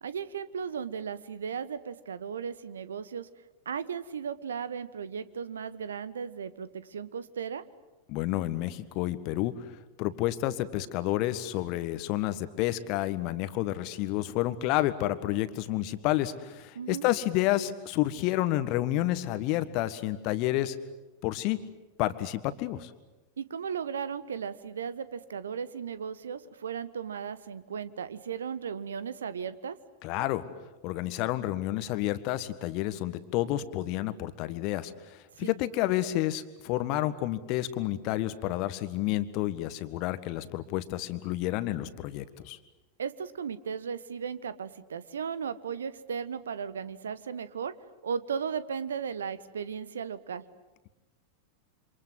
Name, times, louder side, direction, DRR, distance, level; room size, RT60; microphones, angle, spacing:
voice 1, 0.0-3.3 3.6-7.6 16.7-17.0 23.4-29.8 35.4-35.5 43.0-47.7 48.0-50.4, right 7 dB, 65° right, 15 dB, 1.2 m, -36 dB
voice 2, 8.1-9.5 10.0-20.8 21.2-21.6 22.0-22.9 30.0-30.4 30.8-42.6, left 15 dB, 40° left, 13 dB, 1.6 m, -30 dB
28.0 x 26.0 x 8.0 m, 1.1 s
figure-of-eight pair, 90°, 0 cm